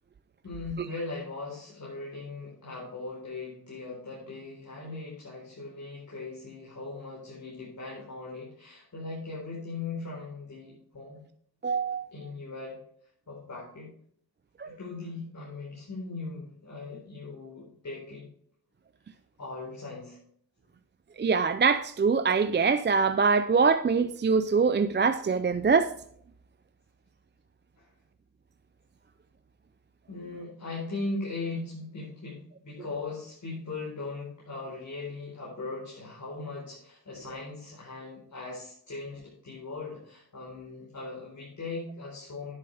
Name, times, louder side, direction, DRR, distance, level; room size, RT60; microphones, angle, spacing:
voice 1, 0.4-11.2 12.1-12.8 13.3-13.9 14.6-18.3 19.4-20.2 27.8-27.9 30.1-42.5, left 3 dB, 55° left, 4.6 m, -39 dB
voice 2, 11.6-12.1 14.6-14.7 21.2-25.9, right 5 dB, 30° right, 0.5 m, -24 dB
10.5 x 9.0 x 3.4 m
wide cardioid pair, 95°, 36 cm